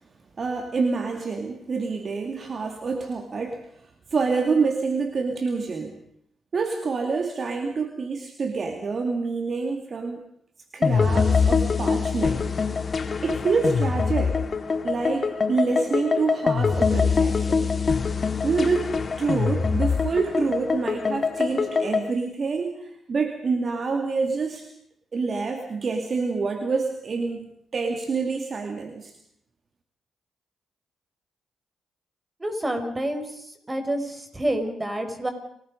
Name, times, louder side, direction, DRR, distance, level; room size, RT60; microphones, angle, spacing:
voice 1, 0.4-6.0 6.5-10.2 10.7-12.5 13.2-14.4 14.8-17.7 18.4-24.7 25.1-29.1, right 4 dB, 50° right, 5 dB, 2.4 m, -27 dB
sound 1, 10.8-22.1, left 5 dB, 45° left, 1.8 m, -24 dB
voice 2, 32.4-33.2 33.7-35.3, right 1 dB, 25° right, 6 dB, 5.7 m, -28 dB
29.5 x 19.5 x 5.3 m, 0.69 s
supercardioid pair, 50°, 0 cm